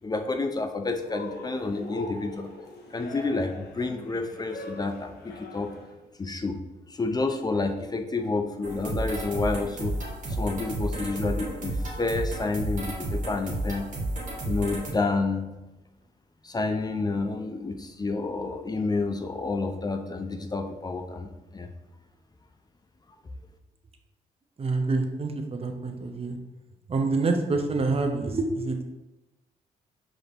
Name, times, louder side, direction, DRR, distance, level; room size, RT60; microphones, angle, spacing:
voice 1, 0.0-2.5 2.9-5.7 6.2-6.6 6.9-10.0 10.3-13.9 14.5-15.5 16.4-21.7, left 3 dB, 25° left, 5 dB, 0.5 m, -29 dB
Cheering, 1.0-6.0, left 3 dB, 80° left, 0.5 m, -41 dB
sound 1, 8.6-14.9, right 2 dB, 50° right, 1.4 m, -32 dB
voice 2, 24.6-26.4 26.9-28.8, right 3 dB, 35° right, 4 dB, 0.7 m, -27 dB
4.9 x 3.0 x 2.6 m, 1.0 s
supercardioid pair, 60°, 16 cm